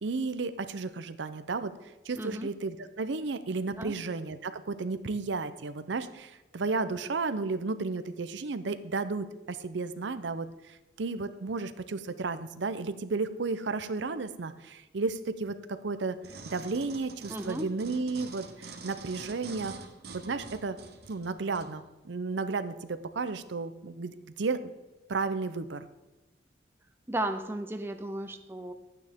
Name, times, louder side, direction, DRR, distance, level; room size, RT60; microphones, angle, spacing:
voice 1, 0.0-1.7 2.1-16.2 16.5-19.7 20.1-20.8 21.1-24.7 25.1-25.9, right 3 dB, 70° right, 12 dB, 0.6 m, -33 dB
voice 2, 2.2-2.5 3.8-3.9 17.3-17.7 27.1-28.7, right 1 dB, 10° right, 7 dB, 0.5 m, -34 dB
sound 1, 16.2-21.7 22.3-22.4, right 3 dB, 55° right, 1.1 m, -46 dB
12.0 x 9.1 x 3.6 m, 1.1 s
head